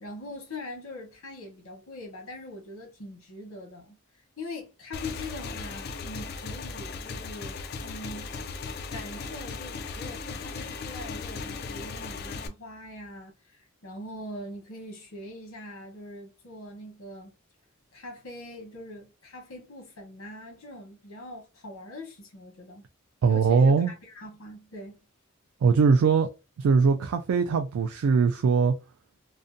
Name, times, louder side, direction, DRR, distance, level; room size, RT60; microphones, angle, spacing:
voice 1, 0.0-4.0 4.4-7.6 7.8-8.4 8.9-17.3 17.9-22.9 23.3-25.0, left 1 dB, 75° left, 1.0 m, -42 dB
Motorcycle / Engine, 4.9-12.5, left 4 dB, 50° left, 0.3 m, -37 dB
voice 2, 23.2-23.9 25.6-26.3 26.6-28.7, right 5 dB, 90° right, 0.3 m, -21 dB
2.5 x 2.2 x 2.5 m
head